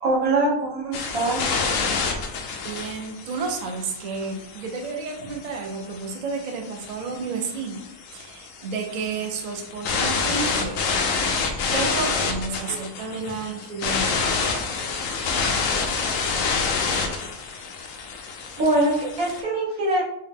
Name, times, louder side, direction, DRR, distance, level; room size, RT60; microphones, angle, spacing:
voice 1, 0.0-1.7 12.7-12.8 18.6-20.0, right 2 dB, 90° right, -5 dB, 1.7 m, -23 dB
sound 1, 0.9-19.4, left 4 dB, 75° left, 0.9 m, -28 dB
voice 2, 2.6-7.8 8.1-10.8 11.7-14.2, right 4 dB, 70° right, 3 dB, 0.3 m, -31 dB
4.4 x 2.1 x 3.5 m, 0.79 s
omnidirectional pair, 1.5 m